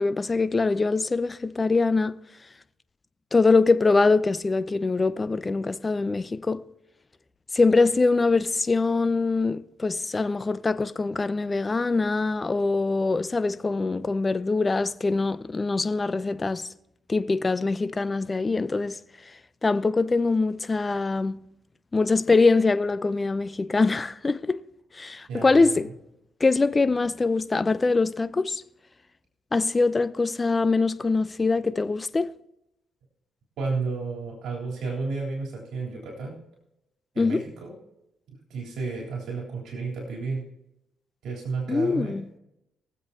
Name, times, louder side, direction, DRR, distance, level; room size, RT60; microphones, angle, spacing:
voice 1, 0.0-2.2 3.3-6.6 7.5-16.7 17.1-19.0 19.6-21.5 21.9-24.6 24.9-25.9 26.4-28.6 29.5-32.3 37.2-37.4 41.7-42.3, left 3 dB, 25° left, 0.6 m, -23 dB
voice 2, 25.3-25.8 33.6-36.3 37.1-37.7 38.5-40.4 41.2-42.1, right 4 dB, 75° right, 3.4 m, -32 dB
23.0 x 7.7 x 2.8 m
cardioid pair, 90°, 0 cm